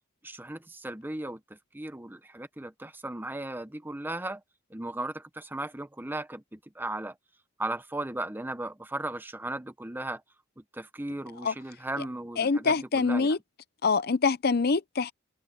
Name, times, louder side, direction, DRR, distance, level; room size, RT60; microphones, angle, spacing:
voice 1, 0.2-4.4 4.7-7.1 7.6-10.2 10.7-13.3, right 2 dB, 10° right, 0.8 m, -36 dB
voice 2, 12.4-13.4 13.8-15.1, left 4 dB, 50° left, 0.6 m, -25 dB
head